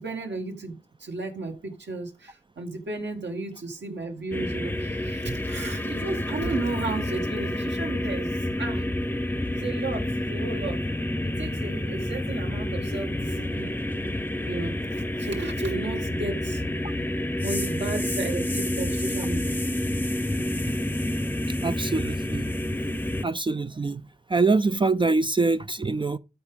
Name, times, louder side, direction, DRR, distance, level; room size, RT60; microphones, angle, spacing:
voice 1, 0.0-8.9 9.5-10.8 11.2-13.7 14.4-16.6 17.4-19.6, right 3 dB, 75° right, 2.2 m, -34 dB
sound 1, 4.3-23.2, left 1 dB, 10° left, 0.7 m, -29 dB
voice 2, 21.6-22.5 23.2-24.0 24.3-26.2, right 3 dB, 25° right, 0.4 m, -24 dB
13.0 x 5.0 x 3.5 m
cardioid pair, 45°, 19 cm